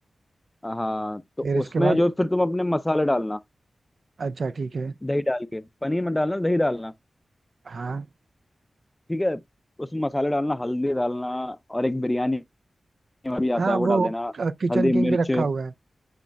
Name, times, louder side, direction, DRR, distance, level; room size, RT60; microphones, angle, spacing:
voice 1, 0.6-1.2 1.5-3.4 5.0-6.9 9.1-9.4 9.8-12.4 13.2-14.3 14.7-15.5, left 1 dB, 15° left, 0.4 m, -25 dB
voice 2, 1.4-2.0 4.2-4.9 7.7-8.1 13.6-15.7, right 4 dB, 65° right, 0.4 m, -26 dB
8.2 x 6.1 x 2.2 m
wide cardioid pair, 105°, 0 cm